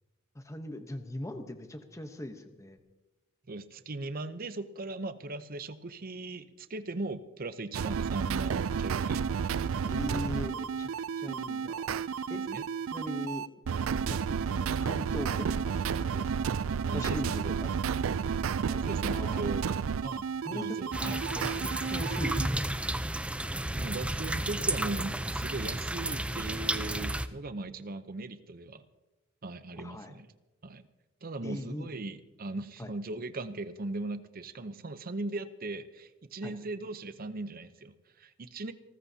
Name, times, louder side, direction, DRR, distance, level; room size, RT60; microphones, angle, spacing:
voice 1, 0.3-2.8 9.8-10.9 11.2-11.9 12.3-12.4 12.9-13.4 14.1-16.6 16.9-17.7 18.7-19.5 20.4-22.7 29.8-30.1 31.4-31.9 32.8-32.9 36.4-36.5, left 1 dB, 15° left, 7 dB, 1.0 m, -40 dB
voice 2, 3.5-9.2 12.3-12.6 16.9-17.6 18.8-19.7 20.0-21.2 23.7-28.9 29.4-30.3 30.6-30.8 31.2-38.7, right 2 dB, 45° right, 11 dB, 0.7 m, -38 dB
sound 1, 7.7-22.5, right 6 dB, 85° right, 0.4 m, -31 dB
sound 2, 20.9-27.3, right 1 dB, 5° right, 0.5 m, -32 dB
28.0 x 14.0 x 2.8 m, 1.1 s
head